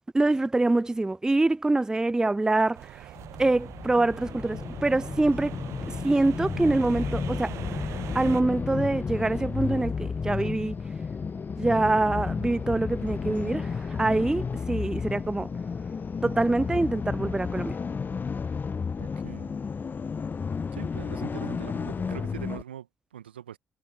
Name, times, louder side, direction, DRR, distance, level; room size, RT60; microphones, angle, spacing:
voice 1, 0.1-3.1 3.4-5.6 5.9-7.5 8.1-10.8 11.6-15.5 16.2-17.8, right 2 dB, 10° right, 0.4 m, -25 dB
sound 1, 2.7-8.4, right 14 dB, 60° right, 0.7 m, -41 dB
sound 2, 3.2-22.6, left 5 dB, 35° left, 0.9 m, -32 dB
sound 3, 4.5-11.2 11.6-19.2 19.6-20.5, left 7 dB, 85° left, 4.1 m, -63 dB
voice 2, 19.0-19.5 20.7-23.6, right 10 dB, 80° right, 1.4 m, -42 dB
figure-of-eight pair, 40°, 6 cm